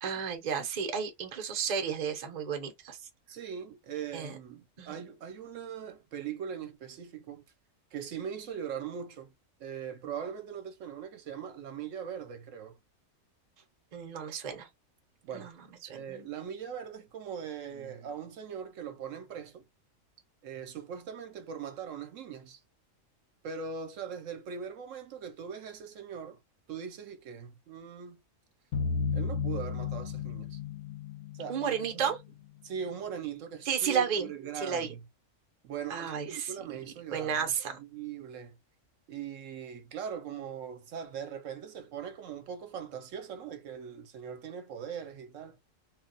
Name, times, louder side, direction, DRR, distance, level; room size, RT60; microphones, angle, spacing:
voice 1, 0.0-3.0 4.1-4.3 4.8-5.0 13.9-14.7 15.3-16.3 31.5-32.2 33.6-34.9 35.9-36.5 37.1-37.8, right 7 dB, 40° right, 0.7 m, -33 dB
voice 2, 3.3-7.4 7.9-9.3 9.6-12.8 15.2-15.5 15.9-19.6 20.4-22.6 23.4-26.4 26.7-28.2 29.1-30.6 31.3-32.1 32.6-35.0 35.6-37.5 37.8-38.6 39.1-45.6, right 7 dB, 75° right, 0.9 m, -40 dB
sound 1, 28.7-32.5, left 5 dB, 70° left, 0.9 m, -34 dB
2.4 x 2.2 x 3.8 m
omnidirectional pair, 1.4 m